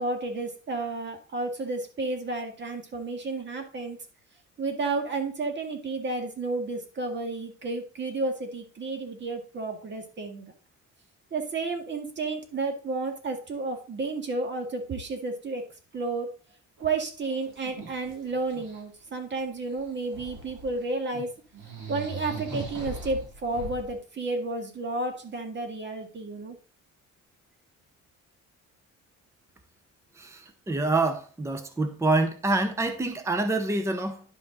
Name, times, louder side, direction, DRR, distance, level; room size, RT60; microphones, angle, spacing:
voice 1, 0.0-4.0 4.6-10.5 11.3-15.7 15.9-16.3 16.8-21.3 21.9-26.6, right 3 dB, 35° right, 4 dB, 1.9 m, -31 dB
sound 1, 16.8-16.9 17.2-18.8 19.7-20.8 21.1-21.2 21.5-23.9, right 3 dB, 80° right, 4.7 m, -39 dB
voice 2, 30.2-34.2, right 2 dB, 10° right, 7 dB, 0.8 m, -26 dB
11.0 x 5.2 x 4.0 m, 0.37 s
cardioid pair, 150°, 30 cm